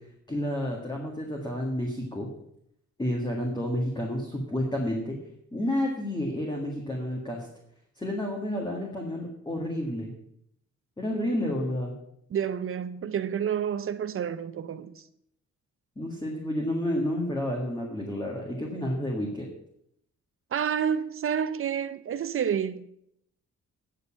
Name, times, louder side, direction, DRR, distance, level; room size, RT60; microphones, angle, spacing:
voice 1, 0.3-2.3 3.0-5.2 5.5-7.5 8.0-10.1 11.0-11.9 16.0-19.5, left 1 dB, 15° left, 1.8 m, -30 dB
voice 2, 12.3-15.0 20.5-22.9, right 8 dB, 45° right, 0.6 m, -29 dB
9.6 x 6.6 x 8.6 m
wide cardioid pair, 150°, 29 cm